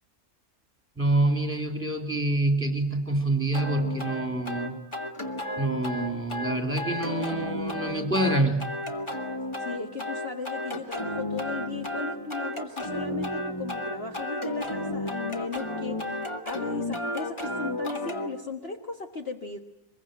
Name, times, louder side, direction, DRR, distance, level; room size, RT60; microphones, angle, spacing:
voice 1, 1.0-4.8 5.6-8.7, right 2 dB, 10° right, 4 dB, 3.2 m, -26 dB
sound 1, 3.5-18.3, left 1 dB, 20° left, 1.8 m, -33 dB
voice 2, 9.6-19.6, left 4 dB, 45° left, 3 dB, 1.6 m, -37 dB
24.5 x 22.0 x 9.1 m, 0.85 s
omnidirectional pair, 1.6 m